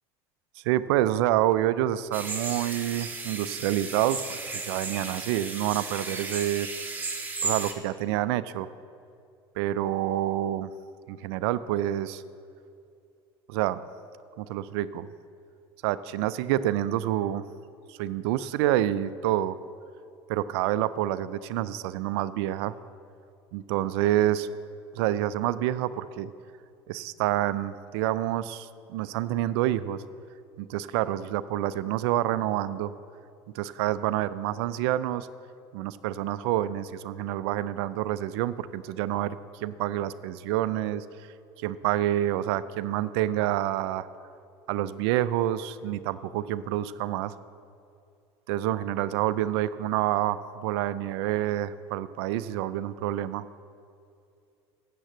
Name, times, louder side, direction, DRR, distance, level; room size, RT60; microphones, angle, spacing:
voice 1, 0.6-4.2 4.5-6.7 7.4-8.7 9.6-10.7 11.1-12.2 13.5-13.8 14.4-15.1 15.8-17.4 17.9-19.6 20.3-22.7 23.5-24.5 25.0-26.3 26.9-30.0 30.6-32.9 33.5-35.3 35.7-41.0 41.6-44.1 44.7-47.3 48.5-53.4, right 13 dB, 70° right, 15 dB, 0.4 m, -28 dB
sound 1, 2.1-7.7, right 3 dB, 15° right, 1.5 m, -34 dB
8.7 x 6.7 x 7.6 m, 2.5 s
hypercardioid pair, 75°, 14 cm